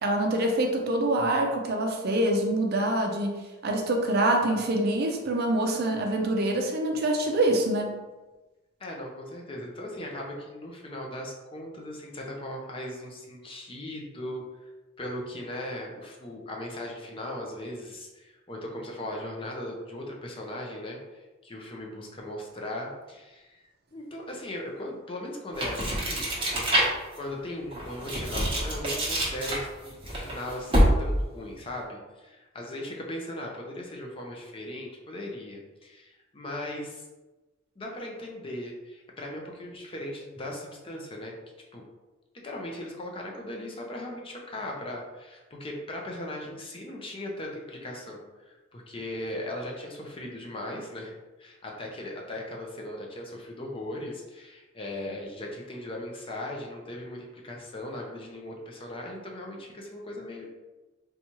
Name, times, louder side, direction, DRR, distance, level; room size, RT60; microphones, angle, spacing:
voice 1, 0.0-7.9, right 1 dB, 50° right, 2 dB, 0.5 m, -25 dB
voice 2, 8.8-14.7 15.0-23.6 23.9-26.4 26.7-37.0 37.8-41.3 41.7-41.8 42.4-60.5, left 1 dB, 25° left, -1 dB, 0.5 m, -38 dB
sound 1, 25.5-27.2 27.7-31.2, equal, 25° right, 0.9 m, -26 dB
4.1 x 2.3 x 2.9 m, 1.2 s
head